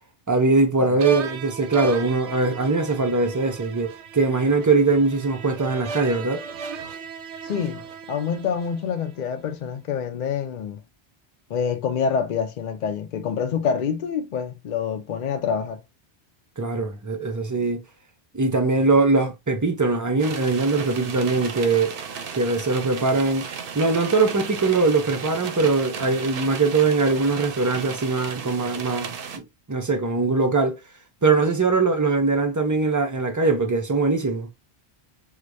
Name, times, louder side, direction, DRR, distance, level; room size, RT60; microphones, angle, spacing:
voice 1, 0.3-6.4 16.6-17.8 18.3-21.9 22.3-23.5 23.7-30.8 31.2-34.5, right 3 dB, 30° right, 0.3 m, -21 dB
sound 1, 1.0-9.2, right 5 dB, 90° right, 0.9 m, -36 dB
voice 2, 7.4-7.8 8.1-10.8 11.5-15.8, left 7 dB, 55° left, 0.5 m, -26 dB
sound 2, 20.2-29.4, right 6 dB, 60° right, 0.7 m, -35 dB
4.7 x 2.1 x 2.5 m
omnidirectional pair, 1.1 m